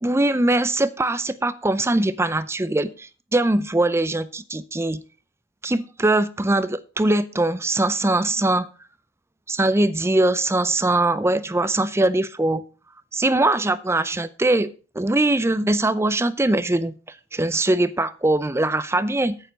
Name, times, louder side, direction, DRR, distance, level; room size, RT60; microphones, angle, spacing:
voice 1, 0.0-5.0 5.6-8.7 9.5-12.7 13.1-14.7 15.0-17.0 17.3-19.4, right 2 dB, 15° right, 15 dB, 0.5 m, -21 dB
9.0 x 8.1 x 5.2 m, 0.35 s
head